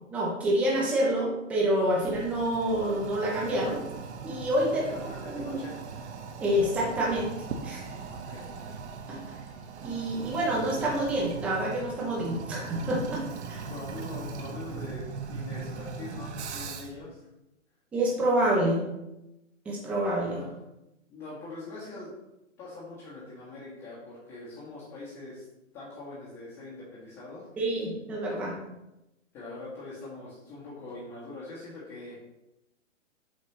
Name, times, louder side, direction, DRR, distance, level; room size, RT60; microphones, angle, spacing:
voice 1, 0.1-3.8 4.2-4.9 5.3-5.6 6.4-7.3 7.6-7.9 9.1-9.2 9.8-13.7 17.9-18.8 19.7-20.4 27.6-28.5, right 1 dB, 5° right, -4 dB, 0.5 m, -27 dB
Toilet flush, 2.0-17.0, right 5 dB, 60° right, 0.9 m, -39 dB
voice 2, 4.8-6.0 8.1-8.7 13.7-17.3 20.2-20.6 21.1-22.1 22.6-25.4 25.7-27.5 29.3-32.2, left 2 dB, 25° left, -8 dB, 1.7 m, -43 dB
7.3 x 4.2 x 3.1 m, 0.91 s
hypercardioid pair, 145°, 38 cm